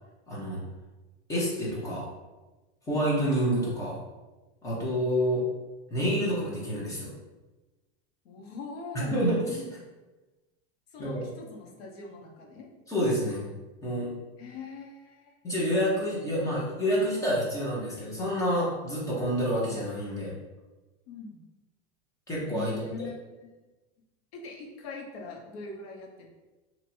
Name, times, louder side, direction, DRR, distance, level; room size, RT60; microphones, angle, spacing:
voice 1, 0.3-0.6 1.3-2.0 2.9-4.0 4.6-5.4 5.9-7.1 9.1-9.7 11.0-11.3 12.9-13.4 13.8-14.1 15.4-20.3 22.3-22.9, equal, 10° left, -7 dB, 0.9 m, -28 dB
voice 2, 8.2-9.2 10.9-12.7 14.4-15.3 21.1-21.4 22.5-23.6 24.3-26.3, left 3 dB, 65° left, 0 dB, 1.0 m, -42 dB
2.9 x 2.7 x 4.3 m, 1.2 s
supercardioid pair, 160°, 32 cm